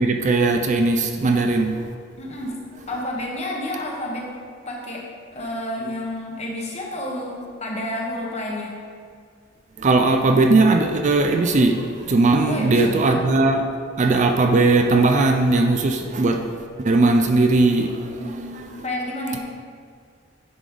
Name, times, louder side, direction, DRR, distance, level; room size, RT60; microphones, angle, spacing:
voice 1, 0.0-1.9 9.8-13.7 14.0-18.6, right 3 dB, 35° right, 5 dB, 0.4 m, -19 dB
voice 2, 2.2-2.6 2.9-4.3 4.7-5.0 5.3-8.8 12.5-13.2 18.2-19.4, left 1 dB, 35° left, -2 dB, 1.3 m, -30 dB
10.0 x 5.1 x 3.9 m, 2.1 s
head